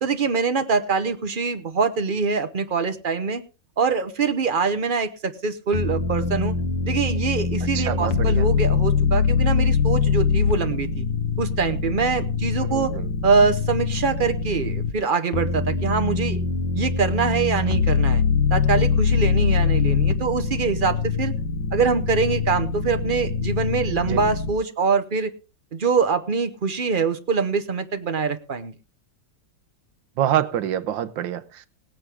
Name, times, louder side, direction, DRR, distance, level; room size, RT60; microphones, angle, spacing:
voice 1, 0.0-3.4 3.8-6.5 6.8-11.0 11.4-12.9 13.2-16.4 16.7-18.2 18.5-21.3 21.7-25.3 25.7-28.7, right 5 dB, 40° right, 0.8 m, -24 dB
sound 1, 5.7-14.9 15.3-24.5, left 5 dB, 90° left, 1.8 m, -23 dB
voice 2, 7.7-8.5 12.6-13.1 24.1-24.2 30.2-31.7, right 11 dB, 80° right, 1.6 m, -26 dB
18.5 x 9.3 x 3.5 m
omnidirectional pair, 2.0 m